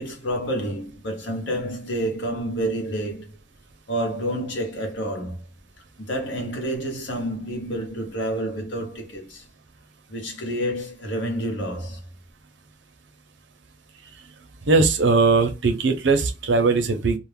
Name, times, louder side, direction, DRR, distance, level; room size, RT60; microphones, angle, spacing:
voice 1, 0.0-3.3 3.9-5.4 6.0-9.4 10.1-12.0, right 1 dB, 85° left, 0.9 m, -29 dB
voice 2, 14.7-17.2, right 4 dB, 85° right, 0.6 m, -19 dB
2.4 x 2.0 x 3.2 m
head